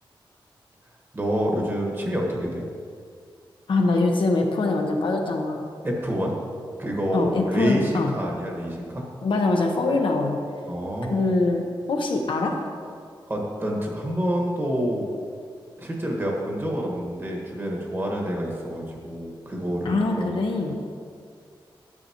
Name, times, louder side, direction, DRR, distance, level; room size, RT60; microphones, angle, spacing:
voice 1, 1.1-2.6 5.8-6.3 6.8-9.0 10.7-11.2 13.3-15.1 15.8-20.3, equal, 25° right, -1 dB, 1.4 m, -27 dB
voice 2, 3.7-5.6 7.1-8.1 9.2-10.4 11.1-12.6 19.8-20.7, left 3 dB, 70° left, 2 dB, 0.9 m, -23 dB
11.0 x 6.8 x 2.9 m, 2.2 s
wide cardioid pair, 115°, 9 cm